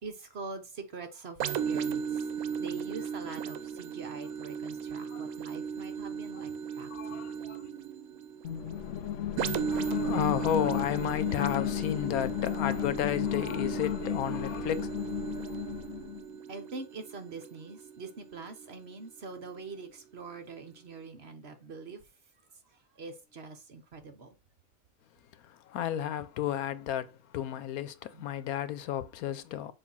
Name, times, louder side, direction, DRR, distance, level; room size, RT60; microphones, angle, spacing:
voice 1, 0.0-2.3 2.6-6.5 6.8-7.3 16.5-22.0 22.7-24.4 28.1-28.3, right 4 dB, 50° right, 1.2 m, -44 dB
sound 1, 1.4-18.9 19.5-19.6, right 7 dB, 80° right, 1.1 m, -36 dB
voice 2, 6.9-7.6 9.7-14.9 25.3-29.7, left 10 dB, 90° left, 1.2 m, -33 dB
sound 2, 8.4-16.2, left 12 dB, 65° left, 0.8 m, -34 dB
6.9 x 2.6 x 5.4 m
omnidirectional pair, 1.5 m